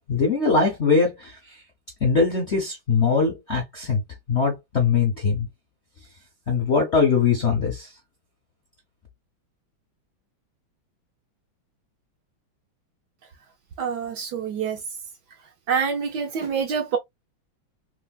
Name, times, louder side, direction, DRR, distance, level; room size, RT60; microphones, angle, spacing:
voice 1, 0.0-1.6 2.0-4.0 4.3-5.5 6.5-7.9, left 5 dB, 65° left, 0.6 m, -22 dB
voice 2, 13.8-14.8 15.7-17.0, right 6 dB, 70° right, 1.0 m, -26 dB
3.3 x 3.2 x 2.2 m
omnidirectional pair, 2.3 m